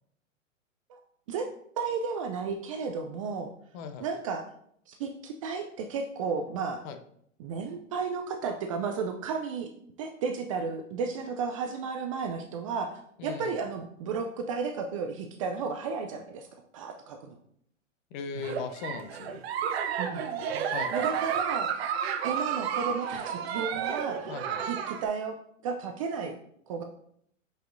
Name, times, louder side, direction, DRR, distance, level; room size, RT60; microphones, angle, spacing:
voice 1, 1.8-3.5 4.0-4.4 4.9-6.9 7.4-9.7 10.0-16.5 16.7-17.4 20.0-20.3 20.9-21.9 22.2-24.3 24.7-25.4 25.6-26.4 26.7-26.8, right 5 dB, 25° right, 5 dB, 0.4 m, -33 dB
voice 2, 3.7-4.1 6.8-7.0 13.2-13.6 18.1-19.4 20.7-21.1 24.3-24.7, left 5 dB, 35° left, 8 dB, 0.7 m, -38 dB
Giggle, 18.4-25.1, right 8 dB, 50° right, 0.7 m, -31 dB
7.4 x 4.9 x 2.6 m, 0.68 s
hypercardioid pair, 115°, 39 cm